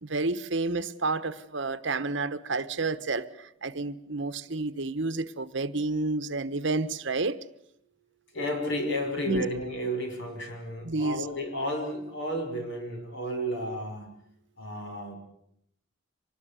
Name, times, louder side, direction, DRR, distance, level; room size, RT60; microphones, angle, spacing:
voice 1, 0.0-7.4 9.3-9.4 10.8-11.2, right 3 dB, 65° right, 1.1 m, -30 dB
voice 2, 8.3-14.1 14.6-15.2, equal, 65° left, 5.3 m, -32 dB
25.0 x 20.0 x 8.3 m
head